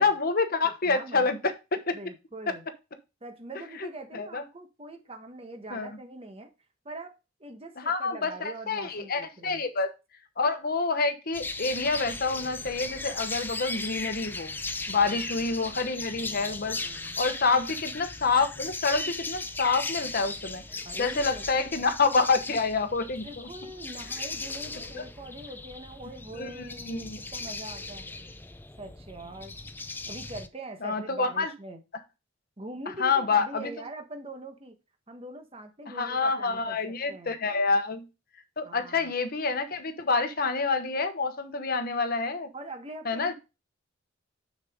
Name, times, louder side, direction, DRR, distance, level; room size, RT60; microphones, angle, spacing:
voice 1, 0.0-1.4 1.7-2.0 3.8-4.4 5.7-5.9 7.8-9.9 10.4-14.5 14.9-16.8 17.2-20.6 21.0-23.5 24.8-25.0 26.4-26.5 26.8-27.2 30.8-31.5 33.0-33.7 35.9-38.0 38.6-42.5 43.0-43.3, left 4 dB, 45° left, 1.1 m, -27 dB
voice 2, 0.6-1.3 1.9-2.7 3.2-6.5 6.8-7.1 7.4-9.6 14.9-15.5 16.7-17.3 20.8-21.7 23.2-28.1 28.8-29.6 30.1-31.8 32.6-34.7 35.1-37.4 38.6-39.1 42.5-43.3, right 2 dB, 30° right, 1.3 m, -43 dB
sound 1, 11.3-30.5, left 3 dB, 10° left, 0.4 m, -37 dB
6.7 x 6.5 x 3.6 m
head